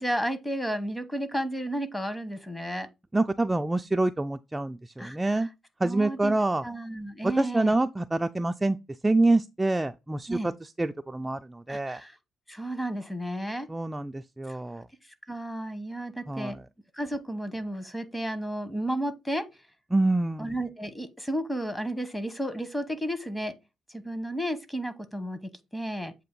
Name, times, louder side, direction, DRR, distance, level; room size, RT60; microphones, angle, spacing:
voice 1, 0.0-2.9 5.0-5.5 5.8-6.3 6.6-7.8 10.3-10.5 11.7-12.2 12.5-13.7 14.5-14.6 15.3-16.6 16.9-19.4 20.4-23.5 23.9-26.1, right 1 dB, 10° left, 0.9 m, -32 dB
voice 2, 3.1-5.5 5.8-6.6 7.2-8.8 9.0-10.3 10.8-12.0 13.7-14.8 16.3-16.6 19.9-20.5, right 2 dB, 15° right, 0.3 m, -26 dB
7.6 x 2.6 x 5.2 m
cardioid pair, 90°, 0 cm